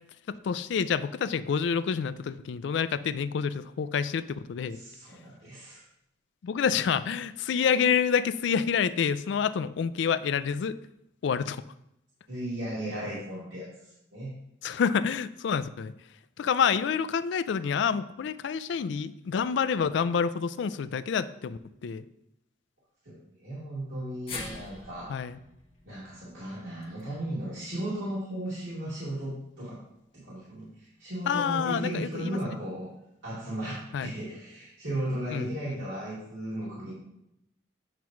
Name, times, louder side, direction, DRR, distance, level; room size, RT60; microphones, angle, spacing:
voice 1, 0.3-4.8 6.4-10.8 11.2-11.6 14.6-15.9 16.4-22.0 25.1-25.4 31.3-32.4 33.9-34.1 35.3-35.5, left 6 dB, 70° left, 15 dB, 0.3 m, -28 dB
voice 2, 4.7-5.8 12.3-13.7 14.1-14.3 23.0-25.2 25.8-29.8 30.1-32.9 33.2-36.9, right 1 dB, 85° right, -9 dB, 2.3 m, -35 dB
sound 1, 24.3-28.5 28.9-29.0 30.1-30.2, left 3 dB, 35° left, 1.7 m, -45 dB
9.0 x 3.1 x 5.8 m, 0.81 s
head